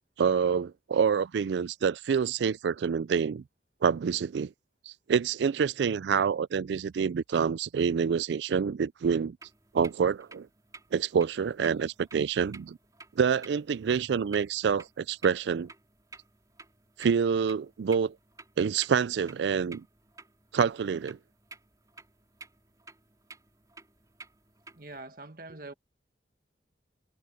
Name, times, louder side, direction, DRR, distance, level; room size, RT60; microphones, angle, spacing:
voice 1, 0.2-3.4 3.8-4.5 4.9-9.4 9.7-10.5 10.9-12.8 13.2-15.7 17.0-18.1 18.6-19.8 20.5-21.2, right 6 dB, 75° right, 0.3 m, -27 dB
sound 1, 9.4-25.0, right 3 dB, 20° right, 3.7 m, -53 dB
voice 2, 24.7-25.7, right 2 dB, 50° right, 1.7 m, -44 dB
head